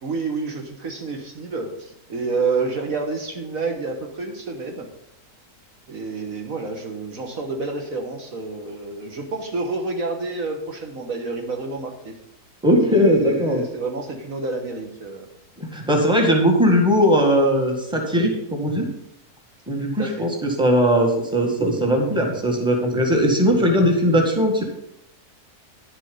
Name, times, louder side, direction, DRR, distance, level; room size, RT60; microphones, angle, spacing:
voice 1, 0.0-4.9 5.9-12.2 12.9-15.3 20.0-20.3, right 3 dB, 60° right, 3 dB, 1.6 m, -29 dB
voice 2, 12.6-13.6 15.7-18.9 19.7-24.6, equal, 5° right, 1 dB, 1.7 m, -19 dB
11.0 x 6.9 x 5.4 m, 0.80 s
omnidirectional pair, 1.6 m